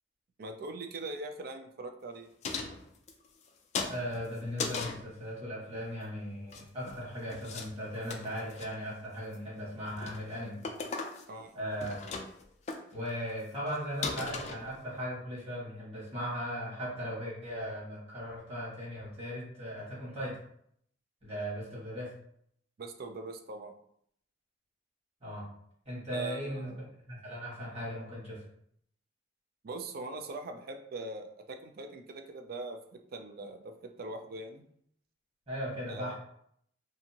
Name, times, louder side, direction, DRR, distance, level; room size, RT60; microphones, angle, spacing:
voice 1, 0.4-2.3 11.3-11.6 22.8-23.7 26.1-26.8 29.6-34.7 35.9-36.1, right 2 dB, 55° right, 6 dB, 0.4 m, -42 dB
sound 1, 2.4-3.5 3.7-5.0 6.3-7.0 7.3-7.7 7.9-8.7 9.2-9.5 9.9-10.2 10.6-11.4 11.7-12.4 12.7-12.8 13.3-13.4 13.7-13.8 14.0-15.0, left 4 dB, 40° left, 0.3 m, -38 dB
voice 2, 3.9-10.6 11.5-12.0 12.9-20.4 21.2-22.1 25.2-25.4 25.8-26.8 27.1-28.4 35.5-36.1, equal, 35° right, -7 dB, 1.4 m, -38 dB
2.7 x 2.5 x 2.8 m, 0.68 s
head